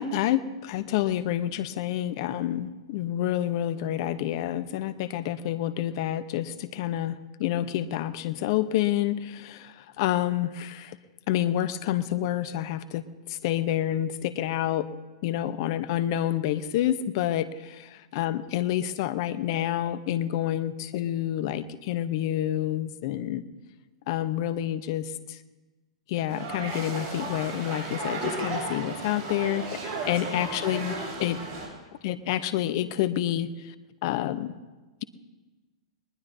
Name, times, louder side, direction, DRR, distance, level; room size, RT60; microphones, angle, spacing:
voice 1, 0.0-11.0 11.3-14.9 15.2-17.7 18.1-23.4 24.1-25.4 26.1-29.8 30.0-31.4 32.0-33.7 34.0-34.5, left 12 dB, 55° left, 14 dB, 0.9 m, -28 dB
sound 1, 26.3-31.7, right 2 dB, 40° right, 6.7 m, -34 dB
20.5 x 20.0 x 2.8 m, 1.2 s
hypercardioid pair, 110°, 3 cm